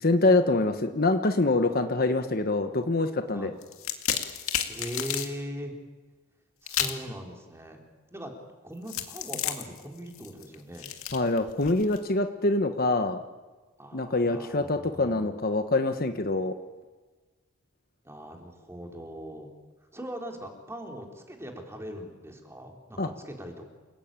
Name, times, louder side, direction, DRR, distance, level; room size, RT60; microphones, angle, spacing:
voice 1, 0.0-3.5 11.1-13.2 13.9-16.5 23.0-23.1, left 2 dB, 40° left, 7 dB, 1.1 m, -25 dB
sound 1, 3.6-5.3 6.7-7.1 8.9-12.0, left 10 dB, 70° left, 2.3 m, -32 dB
voice 2, 4.7-5.7 6.6-7.8 8.1-8.4 8.6-10.9 13.8-15.4 18.0-19.5 19.9-23.6, equal, 10° right, 2 dB, 3.5 m, -40 dB
29.0 x 18.5 x 8.9 m, 1.3 s
head